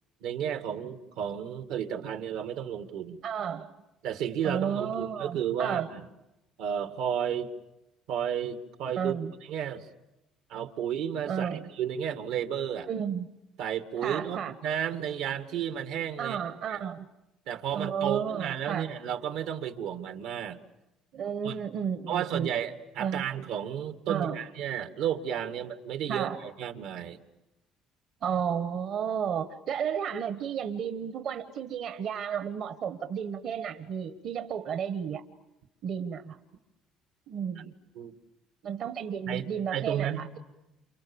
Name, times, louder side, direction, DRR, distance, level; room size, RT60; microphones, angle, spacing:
voice 1, 0.2-3.2 4.0-6.0 6.6-7.5 8.1-9.1 9.5-9.9 10.5-12.9 13.6-16.4 16.7-16.8 17.5-20.6 21.4-21.6 22.1-27.2 38.0-38.1 39.3-39.4 39.7-40.4, right 9 dB, 80° right, 8 dB, 1.8 m, -32 dB
voice 2, 3.2-3.7 4.4-5.9 9.0-9.3 11.3-11.6 12.9-13.3 14.0-14.5 16.2-17.0 17.7-18.9 21.1-22.5 23.0-23.2 24.1-24.4 26.1-26.4 28.2-35.2 35.8-36.4 37.3-37.7 38.6-40.4, right 7 dB, 60° right, 9 dB, 1.2 m, -32 dB
29.0 x 28.5 x 7.1 m, 0.96 s
cardioid pair, 125°, 0 cm